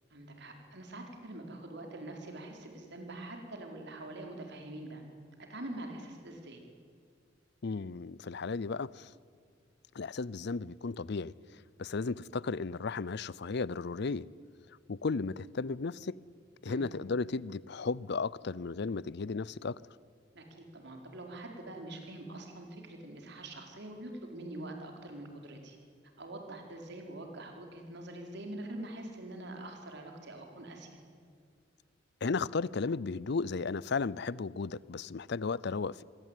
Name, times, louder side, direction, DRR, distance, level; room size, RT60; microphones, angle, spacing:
voice 1, 0.1-5.0 5.5-6.6 16.6-16.9 20.3-25.8 26.2-31.0, right 1 dB, 60° right, 4.7 m, -44 dB
voice 2, 7.6-9.1 9.9-11.3 11.8-14.3 14.9-16.2 16.6-19.8 32.2-36.0, left 4 dB, 60° left, 0.6 m, -34 dB
26.0 x 21.5 x 9.2 m
head